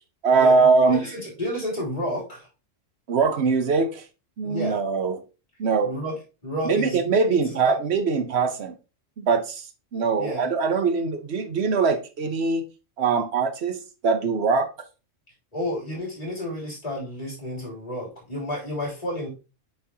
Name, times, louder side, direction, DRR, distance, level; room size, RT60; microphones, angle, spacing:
voice 1, 0.2-1.0 3.1-4.0 4.4-5.2 5.6-5.9 6.6-8.7 9.2-9.6 9.9-12.6 13.0-14.7, right 4 dB, 60° right, 1.0 m, -22 dB
voice 2, 0.9-2.5 4.4-4.8 5.8-6.1 6.4-7.0 7.4-7.8 10.2-10.5 15.5-19.3, equal, 30° left, 3.2 m, -31 dB
8.2 x 4.4 x 2.8 m
omnidirectional pair, 1.3 m